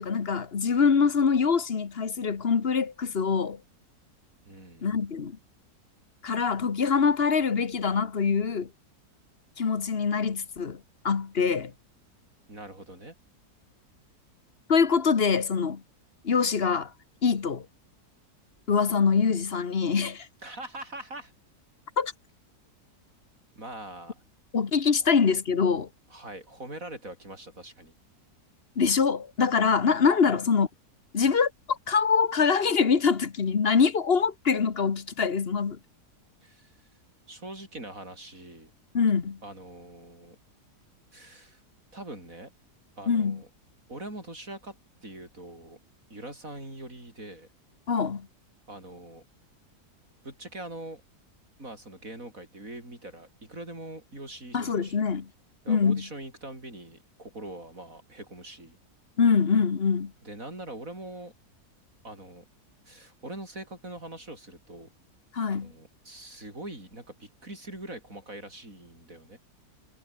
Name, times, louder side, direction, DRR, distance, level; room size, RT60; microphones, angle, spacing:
voice 1, 0.0-3.6 4.8-5.4 6.2-8.7 9.6-10.8 11.0-11.7 14.7-15.8 16.2-16.9 17.2-17.6 18.7-20.3 22.0-22.1 24.5-25.9 28.8-30.7 31.1-35.8 38.9-39.4 43.1-43.4 47.9-48.3 54.5-55.3 55.7-56.0 59.2-60.1 65.3-65.7, left 5 dB, 40° left, 1.4 m, -24 dB
voice 2, 4.5-4.9 12.5-13.2 20.4-21.3 23.6-24.2 26.1-27.9 30.2-30.4 36.4-36.9 37.3-38.7 39.4-40.4 41.1-41.6 41.9-42.5 43.0-43.5 43.9-45.8 46.1-47.5 48.7-49.2 50.2-51.0 51.6-55.1 55.6-58.8 60.2-61.3 62.0-62.4 62.9-64.9 65.5-69.4, right 1 dB, 55° right, 8.6 m, -43 dB
omnidirectional pair, 1.7 m